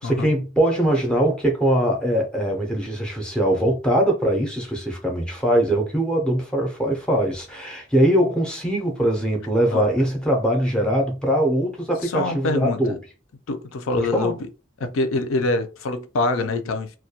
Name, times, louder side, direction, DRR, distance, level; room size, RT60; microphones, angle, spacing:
voice 1, 0.0-12.9 13.9-14.3, right 1 dB, 5° left, 0.4 m, -22 dB
voice 2, 12.0-13.0 13.5-14.4 14.8-17.0, left 2 dB, 80° left, 0.4 m, -25 dB
2.2 x 2.1 x 2.7 m
head